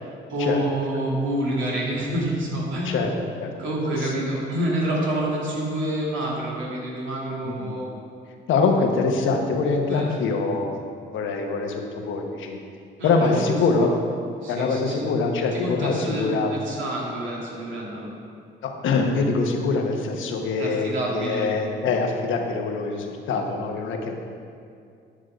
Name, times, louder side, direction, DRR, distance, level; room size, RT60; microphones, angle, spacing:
voice 1, 0.3-3.2 3.6-7.9 9.8-10.3 13.0-13.9 14.4-15.2 15.5-18.1 20.6-21.5, right 1 dB, 75° right, -4 dB, 2.5 m, -28 dB
voice 2, 7.4-7.8 8.5-10.7 11.1-12.6 13.0-13.9 14.5-16.5 18.6-24.1, left 4 dB, 80° left, 3 dB, 1.2 m, -24 dB
10.5 x 6.3 x 5.1 m, 2.4 s
cardioid pair, 90°, 20 cm